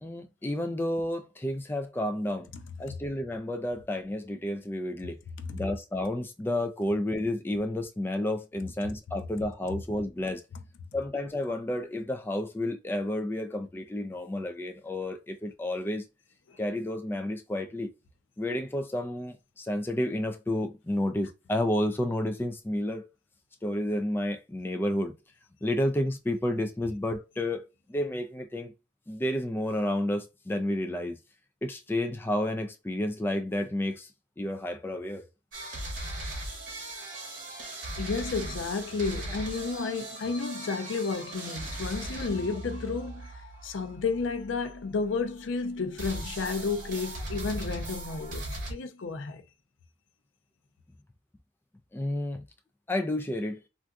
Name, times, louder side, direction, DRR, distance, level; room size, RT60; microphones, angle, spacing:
voice 1, 0.0-2.5 2.8-5.2 5.5-10.4 10.9-16.1 16.6-17.9 18.4-23.1 23.6-25.1 25.6-28.7 29.1-31.2 31.6-34.1 34.4-35.2 51.9-52.4 52.9-53.6, left 1 dB, 10° left, 0.3 m, -31 dB
sound 1, 35.5-45.5 46.0-48.7, right 1 dB, 45° right, 0.9 m, -39 dB
voice 2, 38.0-43.3 43.6-49.4, left 4 dB, 90° left, 0.5 m, -32 dB
3.5 x 2.5 x 2.3 m
head